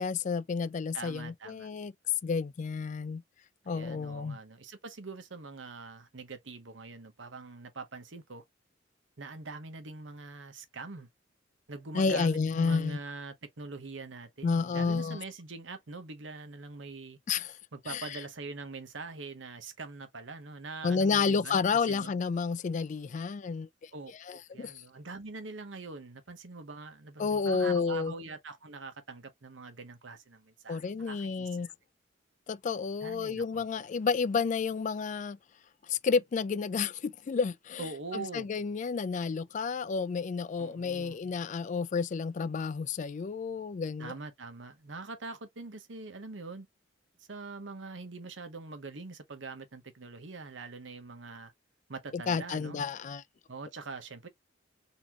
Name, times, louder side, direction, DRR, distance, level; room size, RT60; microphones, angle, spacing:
voice 1, 0.0-1.9 2.2-3.2 3.7-4.4 11.9-13.0 14.4-15.2 17.3-17.6 17.9-18.0 20.8-23.9 24.3-24.7 27.2-28.1 30.7-31.7 32.5-35.4 35.9-37.8 38.1-44.1 52.1-53.2, left 5 dB, 40° left, 0.3 m, -30 dB
voice 2, 0.9-1.7 3.6-8.4 9.2-11.1 11.7-17.2 17.7-22.1 23.9-31.7 33.0-33.6 37.8-38.5 40.6-41.2 44.0-46.7 47.3-51.5 51.9-52.9 53.5-54.3, right 3 dB, 80° right, 1.0 m, -43 dB
4.1 x 2.8 x 3.0 m
head